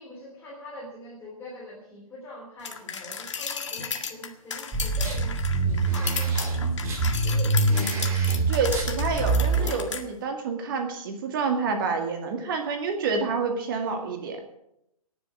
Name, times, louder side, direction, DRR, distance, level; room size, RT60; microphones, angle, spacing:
voice 1, 0.0-6.7 7.2-8.4 13.9-14.0, left 1 dB, 10° left, -5 dB, 3.2 m, -43 dB
sound 1, 2.6-10.0, left 6 dB, 50° left, 1.8 m, -34 dB
sound 2, 4.7-9.7, right 3 dB, 15° right, 2.6 m, -25 dB
voice 2, 8.5-14.4, right 5 dB, 35° right, 4 dB, 2.0 m, -28 dB
18.5 x 6.9 x 8.0 m, 0.79 s
figure-of-eight pair, 125°, 19 cm